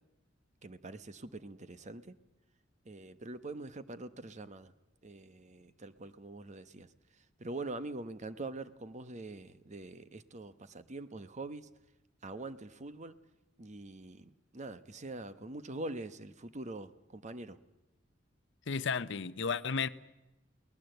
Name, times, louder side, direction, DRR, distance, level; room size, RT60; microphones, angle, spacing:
voice 1, 0.6-2.2 2.8-4.7 5.0-11.7 12.2-13.2 13.6-17.6, right 2 dB, 40° right, 1.0 m, -44 dB
voice 2, 18.7-19.9, left 5 dB, 65° left, 0.7 m, -33 dB
23.0 x 19.0 x 7.9 m
head